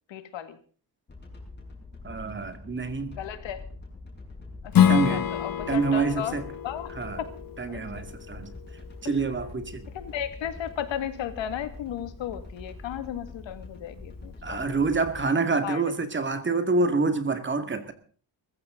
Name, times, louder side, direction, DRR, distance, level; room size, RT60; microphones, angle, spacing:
voice 1, 0.1-0.6 3.2-3.6 4.6-6.4 6.6-6.9 7.2-7.3 7.7-8.1 9.9-14.8 15.6-15.8, left 10 dB, 75° left, 11 dB, 2.3 m, -35 dB
sound 1, 1.1-15.2, left 3 dB, 25° left, 6.7 m, -44 dB
voice 2, 2.0-3.2 4.9-5.2 5.7-6.4 7.0-7.2 7.6-8.5 9.0-9.9 14.4-17.9, right 4 dB, 25° right, 9 dB, 2.3 m, -27 dB
Strum, 4.7-9.9, left 9 dB, 50° left, 1.4 m, -27 dB
22.0 x 15.0 x 3.9 m, 0.43 s
cardioid pair, 155°, 45 cm